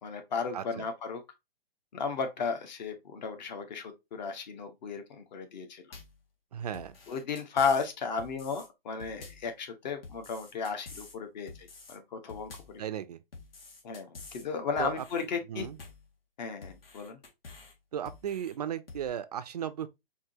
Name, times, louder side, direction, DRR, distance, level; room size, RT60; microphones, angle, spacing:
voice 1, 0.0-1.2 1.9-5.9 7.1-12.8 13.8-15.7 16.4-17.2, left 5 dB, 45° left, 1.0 m, -34 dB
voice 2, 0.5-0.9 6.5-6.9 12.8-13.2 14.8-15.0 15.5-15.8 17.9-19.9, right 9 dB, 45° right, 0.4 m, -35 dB
sound 1, 5.9-6.2 6.7-7.9 8.2-8.7 9.0-9.5 10.0-11.2 11.5-12.0 12.3-12.8 13.3-14.5 14.8-15.2 15.6-16.1 16.6-17.7 18.1-18.5 18.9-19.1, left 4 dB, 70° left, 1.9 m, -49 dB
4.7 x 2.8 x 2.7 m
hypercardioid pair, 145°, 30 cm